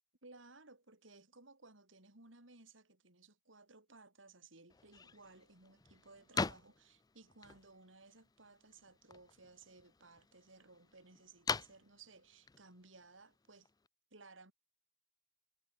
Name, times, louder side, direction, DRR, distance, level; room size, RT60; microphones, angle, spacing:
voice 1, 0.2-13.7 14.1-14.5, right 3 dB, 85° right, 5.1 m, -60 dB
sound 1, 4.7-13.9, left 4 dB, 20° left, 0.5 m, -45 dB
head